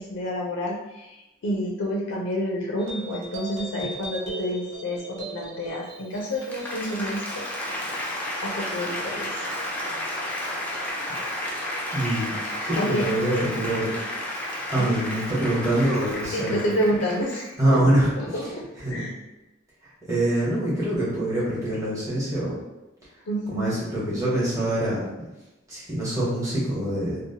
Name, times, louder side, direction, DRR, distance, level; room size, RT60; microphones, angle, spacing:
voice 1, 0.0-7.5 8.4-9.4 12.8-13.0 14.8-14.9 16.3-17.8 18.2-18.6 18.9-19.1 23.3-23.7, equal, 70° left, -2 dB, 0.4 m, -29 dB
sound 1, 2.8-9.6, right 1 dB, 65° right, 0.7 m, -40 dB
Applause, 6.0-17.6, left 1 dB, 5° left, 0.4 m, -32 dB
voice 2, 11.9-12.3 12.6-13.9 14.7-16.7 17.6-18.1 18.8-19.1 19.8-22.5 23.5-25.0 25.7-27.2, right 1 dB, 15° right, -9 dB, 1.0 m, -24 dB
2.8 x 2.0 x 2.7 m, 1.0 s
head